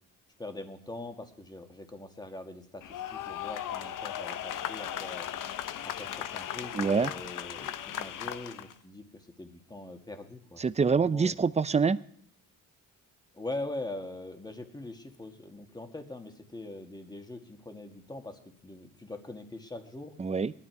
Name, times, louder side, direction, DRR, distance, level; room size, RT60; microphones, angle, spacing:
voice 1, 0.4-5.3 5.8-10.6 11.0-11.4 13.3-20.1, left 2 dB, 10° left, 6 dB, 1.9 m, -42 dB
sound 1, 2.8-8.7, left 10 dB, 65° left, 0.9 m, -37 dB
voice 2, 6.7-7.1 10.6-12.0 20.2-20.5, right 5 dB, 20° right, 16 dB, 0.5 m, -25 dB
19.0 x 12.0 x 4.8 m, 0.63 s
cardioid pair, 95°, 34 cm